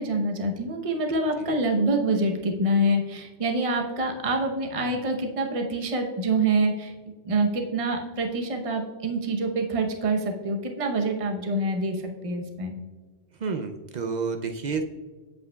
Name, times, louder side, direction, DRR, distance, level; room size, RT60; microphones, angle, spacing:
voice 1, 0.0-6.9 7.2-12.7, right 2 dB, 30° right, 3 dB, 0.8 m, -26 dB
voice 2, 13.4-14.8, right 5 dB, 65° right, 5 dB, 0.4 m, -30 dB
8.0 x 7.8 x 2.3 m, 1.4 s
omnidirectional pair, 1.3 m